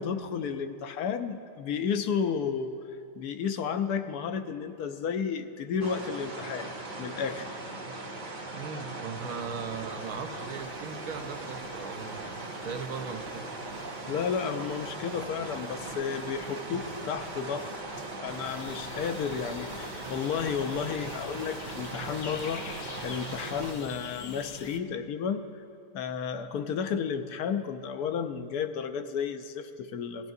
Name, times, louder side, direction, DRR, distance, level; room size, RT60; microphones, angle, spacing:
voice 1, 0.0-2.7 3.1-6.7 7.0-7.5 14.1-17.7 18.2-25.5 25.9-30.3, left 6 dB, 80° left, 9 dB, 1.2 m, -32 dB
sound 1, 5.8-23.7, right 2 dB, 35° right, 1.0 m, -39 dB
voice 2, 8.5-13.5, right 5 dB, 65° right, 5 dB, 1.3 m, -38 dB
sound 2, 9.2-24.0, right 4 dB, 90° right, 1.5 m, -50 dB
sound 3, 18.4-24.8, left 5 dB, 60° left, 0.4 m, -45 dB
19.0 x 14.5 x 2.7 m, 2.5 s
omnidirectional pair, 1.6 m